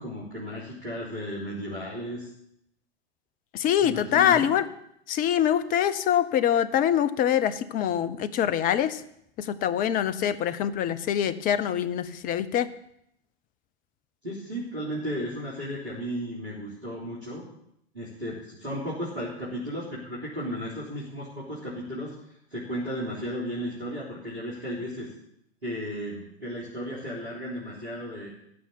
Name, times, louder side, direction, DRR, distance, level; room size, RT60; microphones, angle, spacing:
voice 1, 0.0-2.3 3.8-4.5 14.2-17.4 17.9-25.1 25.6-28.3, equal, 80° right, -6 dB, 3.9 m, -34 dB
voice 2, 3.5-4.7 5.1-9.0 9.4-12.7, left 10 dB, 25° left, 14 dB, 0.8 m, -24 dB
14.5 x 5.9 x 9.8 m, 0.75 s
figure-of-eight pair, 95°, 32 cm